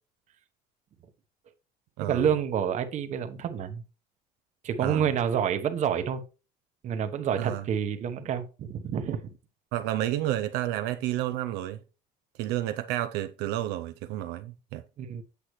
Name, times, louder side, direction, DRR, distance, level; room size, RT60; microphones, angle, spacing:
voice 1, 2.0-3.8 4.6-6.2 6.8-9.3 15.0-15.2, right 8 dB, 45° right, 1.0 m, -28 dB
voice 2, 9.7-11.8 12.4-14.8, right 14 dB, 90° right, 0.5 m, -30 dB
8.3 x 5.7 x 3.1 m
cardioid pair, 130°, 16 cm